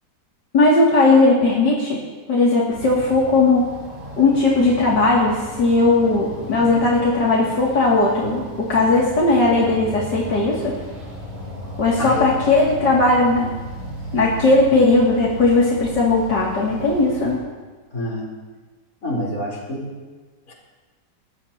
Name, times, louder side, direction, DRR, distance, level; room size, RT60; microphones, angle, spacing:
voice 1, 0.5-2.0 2.3-3.7 4.2-10.7 11.8-13.5 14.1-17.4, left 2 dB, 75° left, -5 dB, 3.3 m, -17 dB
sound 1, 2.7-17.3, right 1 dB, 40° right, 5.3 m, -35 dB
voice 2, 12.0-12.3 17.9-18.3 19.0-20.0 20.5-20.6, equal, 50° left, -3 dB, 4.4 m, -27 dB
23.5 x 20.5 x 2.9 m, 1.3 s
omnidirectional pair, 1.9 m